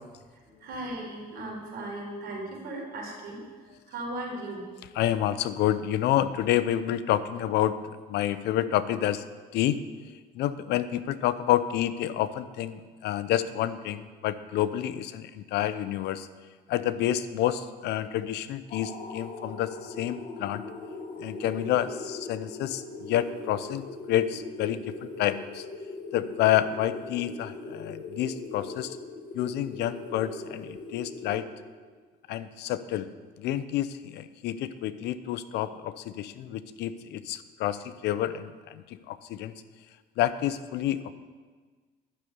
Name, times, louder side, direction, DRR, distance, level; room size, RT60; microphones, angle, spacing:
voice 1, 0.3-4.7, right 1 dB, 65° right, -1 dB, 4.2 m, -37 dB
voice 2, 5.0-7.8 8.1-9.2 9.5-9.8 10.3-16.3 16.7-20.6 21.2-25.6 26.1-29.0 29.3-31.5 32.3-33.1 33.4-39.5 40.2-41.1, left 12 dB, 80° left, 14 dB, 0.7 m, -29 dB
sound 1, 18.7-31.9, left 3 dB, 50° left, 2.5 m, -41 dB
12.0 x 6.9 x 9.4 m, 1.5 s
cardioid pair, 110°, 17 cm